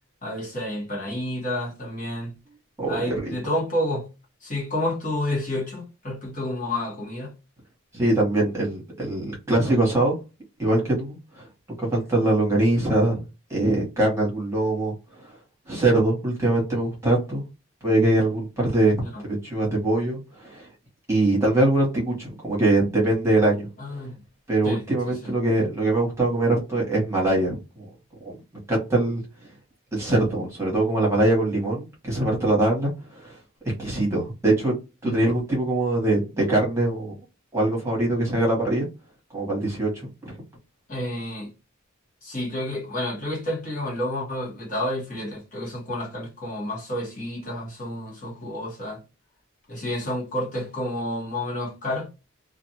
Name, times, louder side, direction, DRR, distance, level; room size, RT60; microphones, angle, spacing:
voice 1, 0.2-2.3 2.9-4.1 4.4-7.3 19.0-19.2 23.8-24.2 24.6-25.3 35.0-35.2 40.9-41.5 42.2-49.0 49.7-52.1, left 1 dB, 40° left, 1.2 m, -30 dB
voice 2, 2.8-3.3 7.9-10.1 10.6-11.5 11.8-13.2 13.5-15.3 15.7-17.4 17.8-20.7 21.1-24.0 24.5-27.9 28.2-28.3 28.7-29.2 29.9-33.4 33.8-34.7 35.0-37.1 37.5-38.9 39.3-39.9 40.2-40.3, right 2 dB, 15° right, 1.2 m, -23 dB
2.5 x 2.4 x 2.8 m
head